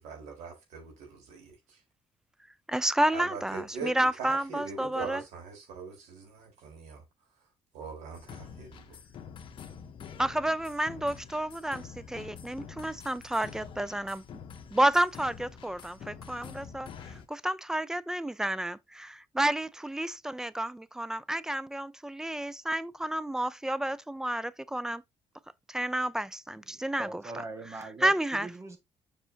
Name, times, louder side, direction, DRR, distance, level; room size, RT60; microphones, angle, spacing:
voice 1, 0.0-1.8 3.1-7.0 7.7-9.0, right 5 dB, 90° right, 4.3 m, -42 dB
voice 2, 2.7-5.2 10.2-14.2 14.7-25.0 25.7-27.2 28.0-28.5, right 1 dB, 5° right, 0.3 m, -30 dB
sound 1, 8.1-17.3, left 7 dB, 45° left, 1.1 m, -47 dB
voice 3, 26.7-28.1 28.4-28.8, right 2 dB, 25° right, 1.7 m, -41 dB
7.4 x 5.5 x 2.8 m
cardioid pair, 170°, 12 cm